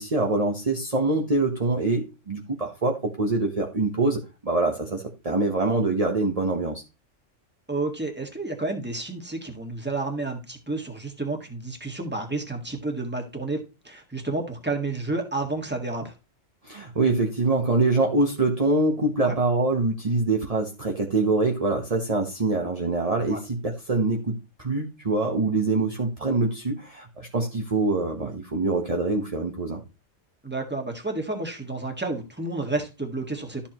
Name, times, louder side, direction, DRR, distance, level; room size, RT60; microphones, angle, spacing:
voice 1, 0.0-6.8 16.6-29.8, right 3 dB, 30° right, 2 dB, 1.2 m, -24 dB
voice 2, 7.7-16.1 19.2-19.4 23.3-23.4 30.4-33.7, right 2 dB, 10° right, 3 dB, 1.8 m, -30 dB
13.0 x 7.2 x 3.0 m, 0.29 s
omnidirectional pair, 1.3 m